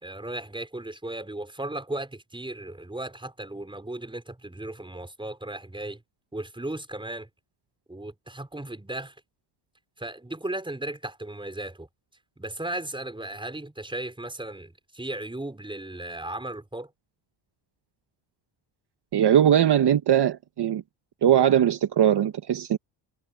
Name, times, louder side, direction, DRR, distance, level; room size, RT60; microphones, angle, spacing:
voice 1, 0.0-6.0 6.3-7.3 7.9-9.1 10.0-11.9 12.4-16.9, right 1 dB, 10° right, 5.3 m, -36 dB
voice 2, 19.1-20.8 21.2-22.8, right 10 dB, 50° right, 1.5 m, -20 dB
cardioid pair, 80°, 50 cm